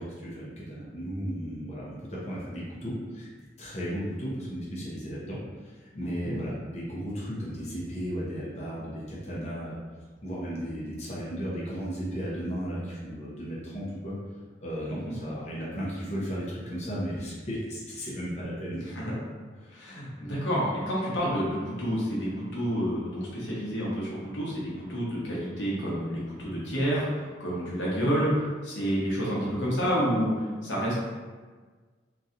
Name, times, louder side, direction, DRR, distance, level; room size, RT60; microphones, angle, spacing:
voice 1, 0.0-3.3 3.6-9.8 10.2-14.1 14.6-18.8 19.6-19.8, equal, 35° left, -7 dB, 0.7 m, -35 dB
voice 2, 6.0-6.3 14.9-15.2 18.9-19.1 19.7-31.0, equal, 85° left, -6 dB, 1.0 m, -29 dB
3.0 x 2.7 x 2.6 m, 1.4 s
head